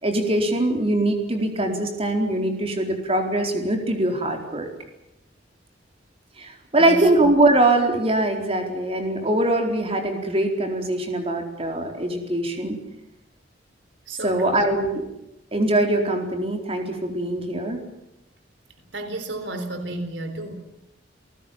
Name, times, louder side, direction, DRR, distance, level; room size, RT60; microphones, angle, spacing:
voice 1, 0.0-4.7 6.4-12.8 14.2-15.1 15.5-17.8, right 1 dB, 35° right, 3 dB, 4.4 m, -22 dB
voice 2, 6.7-7.3 14.1-14.6 18.9-20.5, right 2 dB, 85° right, 8 dB, 3.8 m, -32 dB
29.5 x 19.0 x 7.6 m, 0.88 s
head